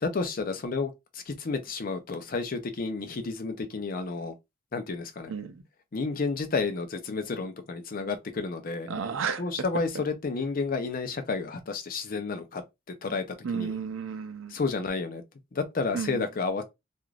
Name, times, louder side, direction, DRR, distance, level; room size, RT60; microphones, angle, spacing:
voice 1, 0.0-4.3 4.7-5.3 5.9-8.9 9.4-12.6 13.0-13.2 13.5-13.8 14.5-15.2 15.5-16.6, left 4 dB, 45° left, 0.5 m, -31 dB
voice 2, 5.3-5.6 8.9-9.4 13.4-14.5 15.9-16.3, right 6 dB, 85° right, 0.5 m, -32 dB
3.1 x 2.4 x 2.4 m
head